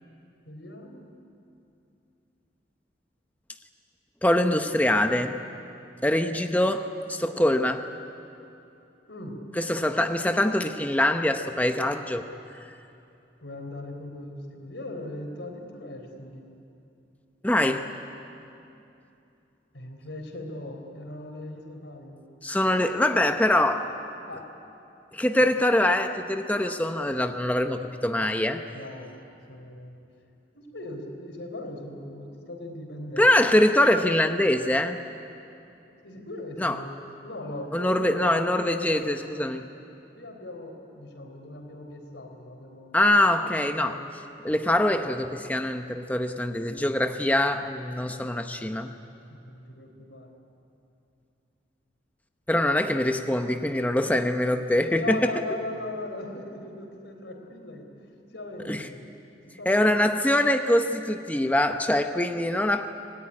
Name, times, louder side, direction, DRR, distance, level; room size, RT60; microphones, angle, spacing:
voice 1, 0.5-1.1 6.1-6.6 9.1-9.4 13.4-16.4 19.7-22.2 24.3-24.5 25.4-25.5 28.7-30.0 30.5-33.3 36.0-36.9 37.2-39.3 40.2-43.0 43.4-44.0 49.3-50.3 54.9-57.9 58.3-59.1 59.5-60.0, left 1 dB, 90° left, 3 dB, 4.0 m, -39 dB
voice 2, 4.2-5.4 6.0-7.8 9.6-12.3 17.4-17.9 22.4-23.9 25.1-28.6 33.2-35.0 36.6-36.7 37.7-39.6 42.9-44.0 44.4-48.9 52.5-55.3 58.7-58.9 59.7-62.9, left 1 dB, 10° left, 6 dB, 0.8 m, -23 dB
25.5 x 18.5 x 9.9 m, 2.7 s
head